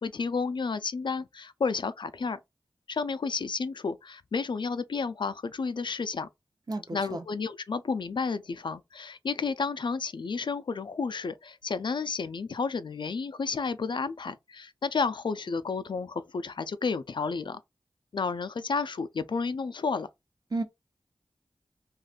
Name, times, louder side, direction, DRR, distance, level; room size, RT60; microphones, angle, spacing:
voice 1, 0.0-2.4 2.9-6.3 6.9-17.6 18.1-20.1, left 4 dB, 60° left, 0.3 m, -31 dB
voice 2, 6.7-7.2 20.5-20.6, right 2 dB, 45° right, 0.8 m, -32 dB
2.5 x 2.4 x 3.5 m
cardioid pair, 45°, 9 cm